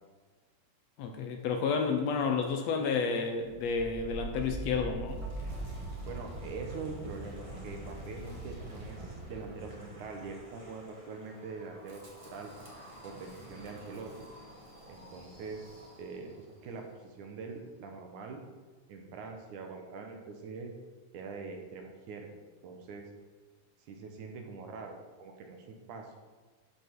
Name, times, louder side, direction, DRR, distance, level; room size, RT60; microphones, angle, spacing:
voice 1, 1.0-5.2, left 5 dB, 70° left, 5 dB, 1.6 m, -31 dB
Wind, 3.4-16.4, right 1 dB, 15° right, 1.1 m, -44 dB
voice 2, 6.1-12.5 13.0-14.3 14.9-18.4 18.9-20.7 21.1-22.3 22.6-23.1 23.9-24.9 25.2-26.1, right 4 dB, 70° right, 3 dB, 2.5 m, -43 dB
12.5 x 5.4 x 4.6 m, 1.4 s
omnidirectional pair, 3.8 m